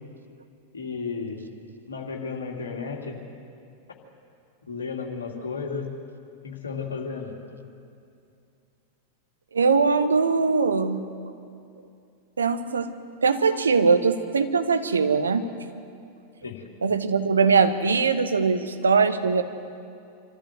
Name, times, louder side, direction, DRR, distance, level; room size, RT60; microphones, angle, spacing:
voice 1, 0.7-1.4 1.9-3.2 4.7-5.9 6.4-7.4 16.4-16.6, left 5 dB, 70° left, 1 dB, 2.7 m, -33 dB
voice 2, 9.5-11.1 12.4-12.9 13.2-15.4 16.8-19.4, right 5 dB, 70° right, 9 dB, 1.1 m, -21 dB
25.5 x 14.0 x 8.0 m, 2.5 s
figure-of-eight pair, 90°, 0 cm